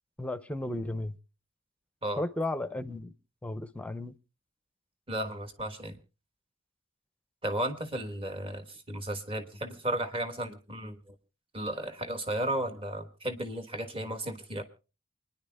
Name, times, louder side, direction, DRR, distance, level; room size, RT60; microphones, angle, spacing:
voice 1, 0.2-1.2 2.2-3.1 3.4-4.2, left 2 dB, 5° left, 0.6 m, -34 dB
voice 2, 5.1-6.0 7.4-11.1 11.5-14.6, right 1 dB, 30° right, 1.4 m, -34 dB
28.5 x 10.5 x 2.3 m
head